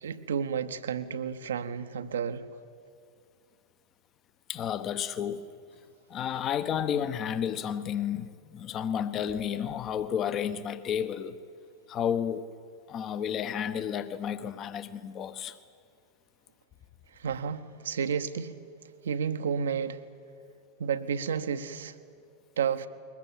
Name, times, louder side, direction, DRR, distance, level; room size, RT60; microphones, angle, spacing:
voice 1, 0.0-2.4 17.2-18.5 19.0-20.0 20.8-22.0 22.6-22.9, right 7 dB, 65° right, 1.0 m, -31 dB
voice 2, 4.5-5.5 6.1-11.4 11.9-12.5 12.9-15.6, left 8 dB, 30° left, 1.1 m, -31 dB
21.5 x 20.5 x 9.0 m
figure-of-eight pair, 90°, 0 cm